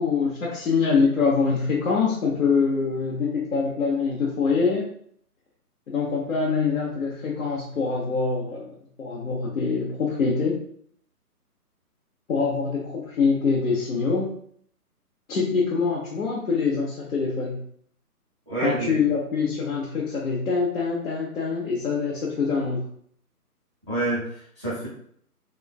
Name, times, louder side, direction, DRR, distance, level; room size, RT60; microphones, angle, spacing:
voice 1, 0.0-4.9 5.9-8.7 9.0-10.6 12.3-14.3 15.3-17.6 18.6-22.8, left 5 dB, 60° left, -5 dB, 0.7 m, -24 dB
voice 2, 18.5-19.0 23.9-24.9, right 2 dB, 20° right, -11 dB, 0.5 m, -27 dB
3.0 x 2.2 x 2.2 m, 0.63 s
figure-of-eight pair, 145°, 47 cm